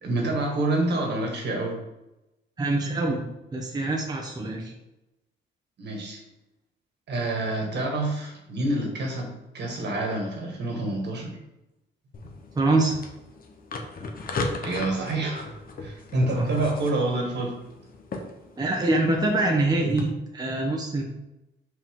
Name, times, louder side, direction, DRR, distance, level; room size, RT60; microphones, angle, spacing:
voice 1, 0.0-1.8 5.8-6.2 7.1-11.4 12.2-12.4 14.6-15.5 15.8-17.6, right 2 dB, 60° right, 1 dB, 1.8 m, -27 dB
voice 2, 2.6-3.2 3.5-4.7 12.5-12.9 16.4-16.5 18.6-21.0, right 2 dB, 20° right, 0 dB, 0.9 m, -24 dB
sound 1, 12.1-20.0, left 3 dB, 45° left, 1.0 m, -37 dB
5.3 x 5.0 x 3.8 m, 0.92 s
cardioid pair, 90°, 20 cm